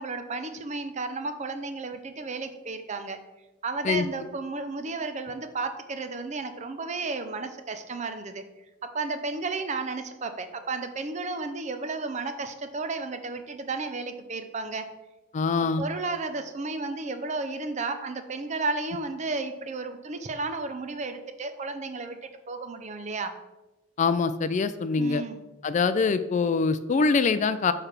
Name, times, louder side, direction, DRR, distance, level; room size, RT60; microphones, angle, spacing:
voice 1, 0.0-3.2 3.6-8.4 8.8-14.9 15.6-22.2 22.5-23.4 25.0-25.4, right 3 dB, 35° right, 8 dB, 0.5 m, -33 dB
voice 2, 15.3-15.9 24.0-25.2 25.6-27.7, left 4 dB, 35° left, 12 dB, 0.3 m, -24 dB
6.7 x 3.3 x 5.9 m, 1.1 s
head